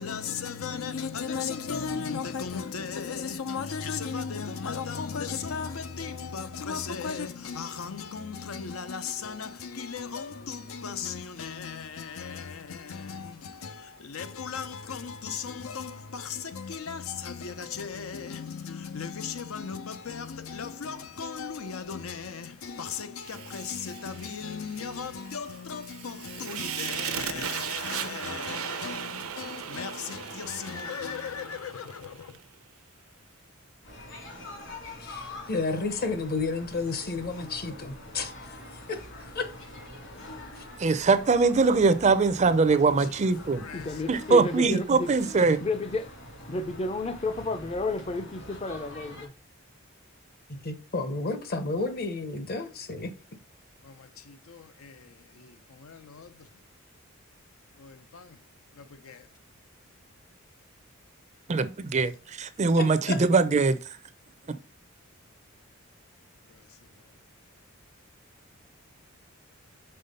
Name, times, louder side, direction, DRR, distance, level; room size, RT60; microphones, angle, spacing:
voice 1, 0.0-32.4 42.7-44.0 53.8-56.5 57.8-58.4 58.7-59.3 66.5-66.7, left 6 dB, 80° left, 0.6 m, -36 dB
Fire, 23.2-32.4, right 8 dB, 85° right, 0.7 m, -37 dB
sound 1, 33.8-49.3, left 1 dB, 65° left, 2.8 m, -45 dB
voice 2, 35.0-38.3 38.7-39.1 39.3-39.5 40.6-40.7 50.5-53.1 62.8-63.2, left 3 dB, 45° left, 0.9 m, -32 dB
voice 3, 40.8-43.7 44.1-45.6 61.5-63.8, right 4 dB, 35° right, 0.5 m, -22 dB
voice 4, 43.7-45.1 45.4-46.1 46.5-49.3, left 3 dB, 30° left, 0.5 m, -32 dB
5.6 x 3.7 x 5.4 m
head